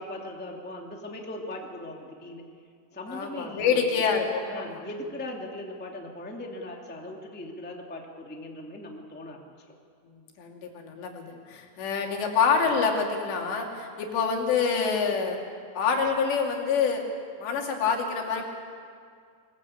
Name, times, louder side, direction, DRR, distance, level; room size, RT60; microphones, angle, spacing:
voice 1, 0.0-2.4 2.9-3.9 4.5-9.4 9.7-9.8, left 1 dB, 5° left, 1 dB, 1.1 m, -39 dB
voice 2, 3.1-4.8 10.4-15.4 15.7-17.0 17.4-18.5, left 5 dB, 90° left, 1 dB, 4.8 m, -26 dB
23.0 x 20.0 x 8.6 m, 2.2 s
omnidirectional pair, 4.9 m